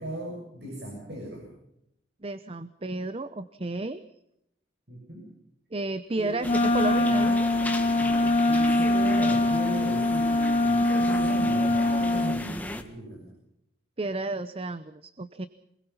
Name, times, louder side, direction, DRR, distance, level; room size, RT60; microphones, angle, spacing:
voice 1, 0.0-1.5 4.9-5.3 6.2-6.4 7.9-13.3, right 1 dB, 60° right, 1 dB, 6.8 m, -37 dB
voice 2, 2.2-4.0 5.7-7.5 14.0-15.5, right 2 dB, 30° right, 13 dB, 0.7 m, -32 dB
Wind instrument woodwind instrument, 6.4-12.5, left 2 dB, 30° left, 1.0 m, -23 dB
sound 1, 6.4-12.8, left 1 dB, 10° left, 1.7 m, -37 dB
27.0 x 20.5 x 5.8 m, 0.81 s
head